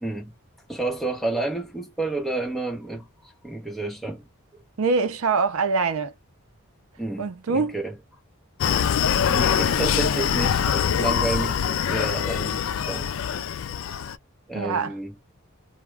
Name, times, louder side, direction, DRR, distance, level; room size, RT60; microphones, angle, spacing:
voice 1, 0.0-0.3 0.7-3.1 3.4-4.2 7.0-7.9 9.3-13.1 14.5-15.1, right 2 dB, ahead, 0.8 m, -30 dB
voice 2, 4.8-6.1 7.2-7.8 14.5-14.9, right 4 dB, 65° right, 0.5 m, -24 dB
Screaming, 8.6-14.2, left 8 dB, 60° left, 0.3 m, -24 dB
2.3 x 2.1 x 3.2 m
head